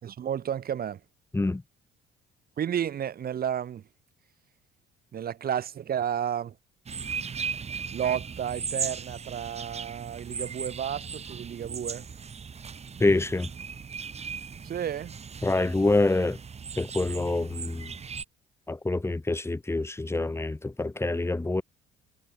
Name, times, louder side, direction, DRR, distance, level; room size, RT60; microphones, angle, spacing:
voice 1, 0.0-1.0 2.6-3.8 5.1-6.5 7.9-12.1 14.6-15.1, right 9 dB, 50° right, 2.6 m, -32 dB
sound 1, 6.9-18.2, right 6 dB, 30° right, 2.2 m, -37 dB
voice 2, 13.0-13.5 15.4-16.4 16.8-17.9 18.7-21.6, left 2 dB, 10° left, 2.4 m, -26 dB
cardioid pair, 95°, 20 cm